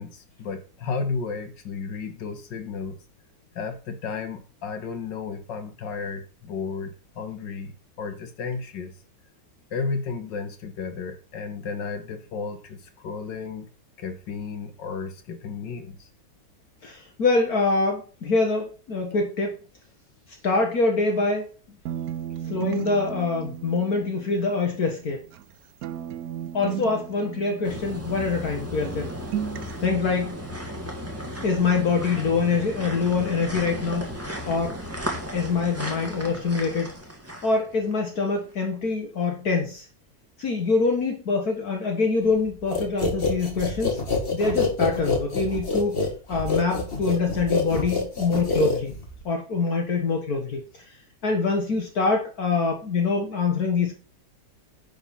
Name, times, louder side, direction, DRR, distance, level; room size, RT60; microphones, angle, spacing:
voice 1, 0.0-3.0 3.6-7.7 8.0-8.9 9.7-13.7 14.0-16.1, left 5 dB, 80° left, 2.1 m, -33 dB
voice 2, 16.8-19.6 20.4-21.5 22.5-25.2 26.5-29.1 29.8-30.4 31.4-34.1 34.5-34.8 35.3-37.0 37.4-39.9 40.4-44.0 44.3-48.9 49.3-50.9 51.2-54.0, left 4 dB, 60° left, 1.9 m, -25 dB
sound 1, 21.9-25.5 25.8-28.6 28.8-29.9, right 10 dB, 65° right, 1.0 m, -35 dB
sound 2, 27.6-38.0 38.5-38.6, equal, 10° right, 1.9 m, -35 dB
sound 3, 42.7-49.2, left 3 dB, 35° left, 2.0 m, -26 dB
10.5 x 4.9 x 5.6 m
omnidirectional pair, 1.9 m